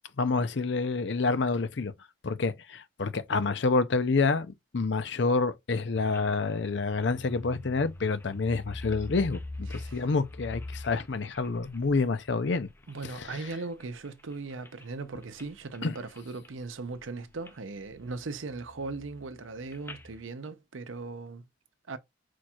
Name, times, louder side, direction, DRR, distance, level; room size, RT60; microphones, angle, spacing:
voice 1, 0.2-1.9 2.2-12.7 13.2-13.4 15.8-15.9, left 4 dB, 65° left, 0.6 m, -28 dB
sound 1, 5.9-13.4 13.8-14.9 15.2-15.5 15.7-16.6 16.9-17.5 17.8-20.2, left 2 dB, 10° left, 0.5 m, -44 dB
voice 2, 9.7-10.0 12.9-21.4 21.9-22.0, right 3 dB, 90° right, 0.7 m, -38 dB
4.6 x 4.4 x 2.4 m
head